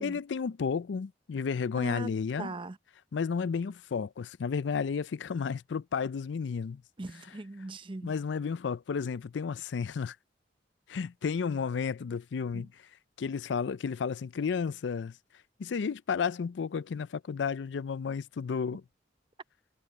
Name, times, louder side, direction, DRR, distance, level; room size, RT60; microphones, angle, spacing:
voice 1, 0.0-2.5 3.1-6.8 8.0-10.2 10.9-12.7 13.2-15.1 15.6-18.8, left 6 dB, 80° left, 0.4 m, -32 dB
voice 2, 1.7-2.1 2.4-2.8 7.0-8.1 12.5-12.6, right 2 dB, 30° right, 0.6 m, -40 dB
head